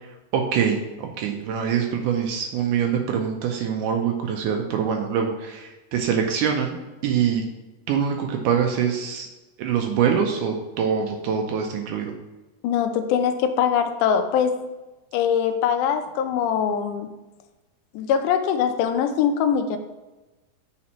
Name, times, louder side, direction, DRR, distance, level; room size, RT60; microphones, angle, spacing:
voice 1, 0.3-6.8 7.0-7.4 7.9-9.3 9.6-12.1, right 7 dB, 80° right, 3 dB, 2.0 m, -24 dB
voice 2, 12.6-14.6 15.1-17.1 17.9-19.8, left 8 dB, 80° left, 8 dB, 2.0 m, -22 dB
8.5 x 4.2 x 2.9 m, 1.1 s
omnidirectional pair, 3.8 m